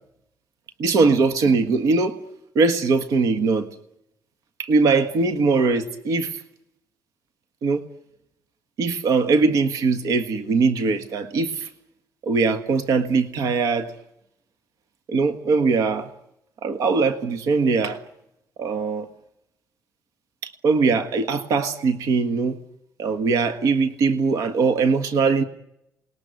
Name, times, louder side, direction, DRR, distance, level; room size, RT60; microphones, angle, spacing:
voice 1, 0.8-2.2 2.5-3.7 4.6-6.4 7.6-7.8 8.8-11.7 12.2-13.9 15.1-16.1 16.6-18.0 18.6-19.1 20.4-22.6 23.0-25.4, right 4 dB, 65° right, 1.6 m, -21 dB
28.0 x 20.0 x 9.6 m
cardioid pair, 180°, 6 cm